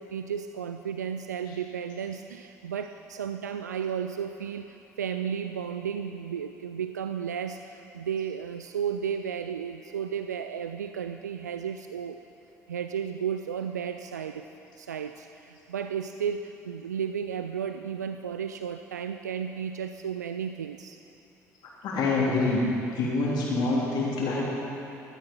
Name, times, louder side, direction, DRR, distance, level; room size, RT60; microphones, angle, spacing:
voice 1, 0.0-12.2 12.7-14.5 14.8-21.0, right 7 dB, 80° right, 8 dB, 0.4 m, -33 dB
voice 2, 21.8-22.6 23.0-24.5, left 3 dB, 55° left, -5 dB, 3.5 m, -26 dB
16.0 x 12.5 x 5.5 m, 2.8 s
figure-of-eight pair, 55°, 9 cm